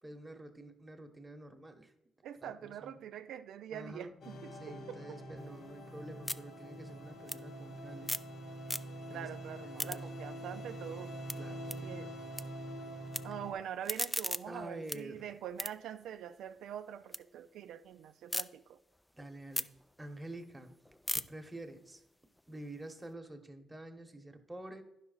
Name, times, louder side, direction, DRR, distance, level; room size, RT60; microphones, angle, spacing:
voice 1, 0.0-1.9 2.4-2.5 2.8-3.0 3.7-4.1 4.6-8.1 9.1-9.3 9.6-10.0 11.4-11.7 14.5-15.2 19.1-19.7 20.0-20.8 21.1-22.0 22.5-24.8, right 1 dB, 10° right, 6 dB, 1.1 m, -48 dB
voice 2, 2.2-5.2 9.1-11.1 11.8-12.1 13.2-18.8, right 9 dB, 80° right, 9 dB, 0.3 m, -44 dB
sound 1, 4.2-13.5, right 1 dB, 55° left, 1.1 m, -45 dB
sound 2, 5.4-8.4 8.6-9.2 9.5-12.4 12.7-13.2 13.6-17.2 17.6-18.4 18.9-23.1, left 1 dB, 10° left, 0.3 m, -41 dB
10.0 x 5.8 x 3.9 m, 0.84 s
cardioid pair, 90°, 0 cm